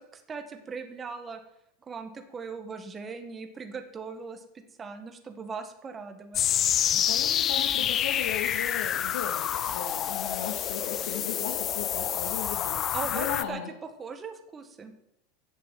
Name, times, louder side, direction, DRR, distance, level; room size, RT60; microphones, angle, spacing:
voice 1, 0.0-1.4 1.8-4.4 4.8-6.4 12.9-14.9, right 5 dB, 15° right, 7 dB, 1.5 m, -39 dB
sound 1, 6.3-13.4, left 10 dB, 30° left, 0.7 m, -28 dB
voice 2, 6.9-13.7, left 8 dB, 85° left, 2 dB, 2.4 m, -37 dB
15.5 x 8.6 x 7.7 m, 0.81 s
supercardioid pair, 160°, 0 cm